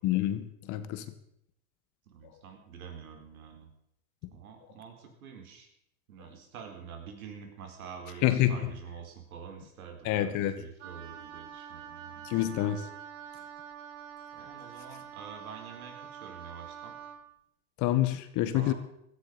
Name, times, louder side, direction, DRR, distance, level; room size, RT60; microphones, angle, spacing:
voice 1, 0.0-1.0 8.2-8.5 10.0-10.6 12.2-12.9 17.8-18.7, left 13 dB, 45° left, 11 dB, 1.8 m, -27 dB
voice 2, 2.1-3.7 4.3-5.7 6.1-12.3 14.3-16.9 18.5-18.7, right 6 dB, 85° right, 4 dB, 4.4 m, -47 dB
Wind instrument woodwind instrument, 10.8-17.2, right 9 dB, 60° right, 2.1 m, -46 dB
16.5 x 13.5 x 5.3 m, 0.76 s
supercardioid pair, 125°, 42 cm